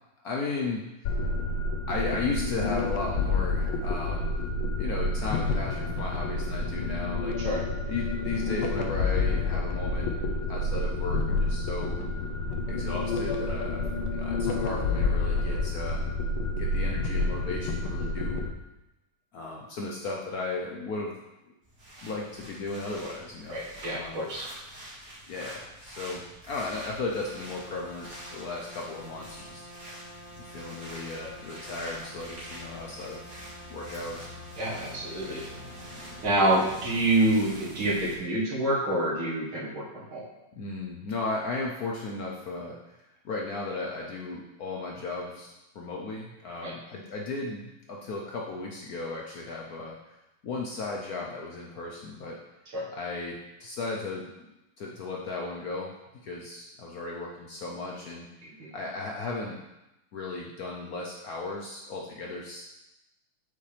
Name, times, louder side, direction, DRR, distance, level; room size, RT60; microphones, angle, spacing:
voice 1, 0.2-1.2 1.9-4.3 4.8-7.4 7.9-10.1 10.5-12.0 12.7-16.1 16.6-18.4 19.3-21.2 22.0-23.6 23.9-24.2 25.3-30.0 30.4-33.3 33.7-34.3 40.6-50.2 50.4-52.4 52.9-54.5 54.8-55.9 56.2-58.3 58.7-59.6 60.1-62.6, left 3 dB, 65° left, -1 dB, 0.9 m, -36 dB
sound 1, 1.0-18.5, left 2 dB, 85° left, 1.6 m, -29 dB
sound 2, 21.6-38.2, equal, 45° right, 2.4 m, -46 dB
voice 2, 23.5-24.5 34.6-35.4 36.2-39.8 40.1-40.2 46.6-46.7 52.7-52.9 58.6-58.7, right 1 dB, 80° right, -4 dB, 2.4 m, -27 dB
sound 3, 27.2-36.2, equal, 20° right, 1.7 m, -48 dB
8.1 x 5.7 x 3.3 m, 0.96 s
omnidirectional pair, 2.2 m